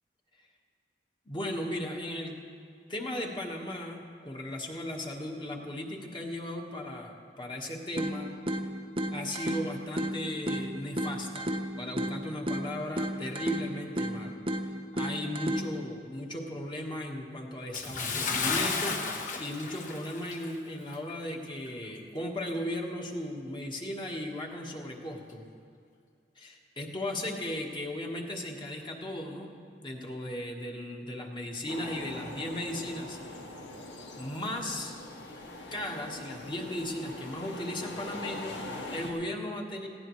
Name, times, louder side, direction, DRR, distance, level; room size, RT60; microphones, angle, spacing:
voice 1, 1.3-2.4 2.9-8.3 9.1-11.5 11.8-14.4 14.9-19.0 19.4-25.4 26.4-29.5 29.8-33.4 34.1-34.9 35.7-39.9, left 1 dB, 25° left, 1 dB, 1.4 m, -36 dB
sound 1, 8.0-16.0, equal, 30° right, 0.8 m, -34 dB
Bathtub (filling or washing) / Splash splatter, 17.7-20.6 20.9-21.1 21.7-21.8, left 4 dB, 50° left, 1.1 m, -33 dB
sound 2, 31.7-39.1, left 2 dB, 85° left, 1.5 m, -42 dB
19.0 x 15.5 x 3.2 m, 2.3 s
head